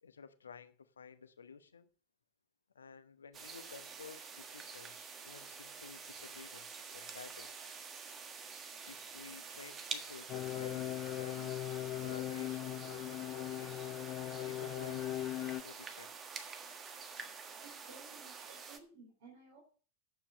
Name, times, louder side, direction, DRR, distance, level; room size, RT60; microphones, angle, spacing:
voice 1, 0.0-1.9 2.7-7.6 8.9-11.6 12.0-14.0 14.4-16.1, left 6 dB, 70° left, 0.9 m, -53 dB
sound 1, 3.3-18.8, right 5 dB, 25° right, 1.5 m, -48 dB
sound 2, 10.3-15.6, left 14 dB, 35° left, 0.4 m, -39 dB
voice 2, 17.6-19.6, right 4 dB, 55° right, 4.1 m, -57 dB
9.5 x 7.3 x 6.4 m
figure-of-eight pair, 90°, 0 cm